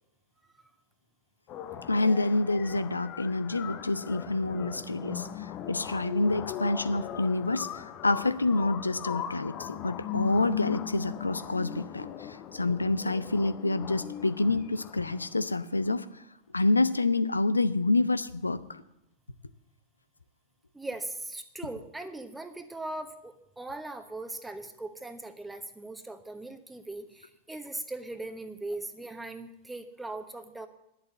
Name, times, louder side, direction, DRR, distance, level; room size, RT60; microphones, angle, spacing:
sound 1, 1.5-15.5, left 10 dB, 35° left, 0.7 m, -39 dB
voice 1, 1.9-16.2 16.5-18.8, left 2 dB, 80° left, 14 dB, 0.5 m, -28 dB
voice 2, 20.7-30.7, right 2 dB, 5° right, 8 dB, 1.1 m, -39 dB
11.0 x 7.5 x 7.8 m, 0.85 s
figure-of-eight pair, 90°, 0 cm